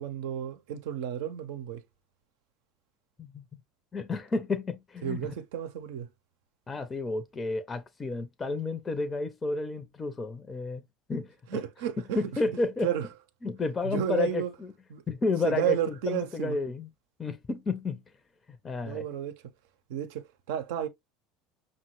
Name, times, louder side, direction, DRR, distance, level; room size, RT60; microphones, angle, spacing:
voice 1, 0.0-1.8 5.0-6.1 11.5-12.2 12.8-13.1 13.8-14.5 14.9-15.0 15.4-16.6 18.8-19.4 19.9-20.9, right 10 dB, 70° right, 0.6 m, -32 dB
voice 2, 3.9-5.2 6.7-10.8 11.1-11.6 12.2-12.9 13.4-14.7 15.1-16.9 17.2-18.0 18.5-19.0, left 3 dB, 25° left, 0.6 m, -31 dB
5.4 x 2.1 x 3.0 m
hypercardioid pair, 70°, 0 cm